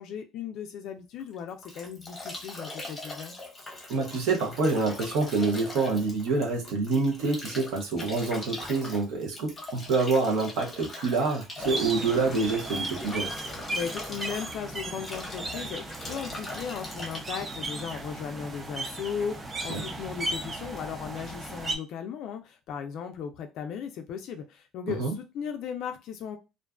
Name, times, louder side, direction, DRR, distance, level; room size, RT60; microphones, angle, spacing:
voice 1, 0.0-3.3 13.7-26.4, left 7 dB, 60° left, 0.3 m, -36 dB
Bathtub (filling or washing) / Drip / Trickle dribble, 1.2-18.4, left 2 dB, 20° left, 0.8 m, -41 dB
voice 2, 3.9-13.3 19.7-19.8 25.0-25.1, right 3 dB, 80° right, 0.8 m, -27 dB
sound 1, 11.6-21.8, right 2 dB, 20° right, 0.4 m, -36 dB
2.4 x 2.2 x 2.3 m
cardioid pair, 140°, 0 cm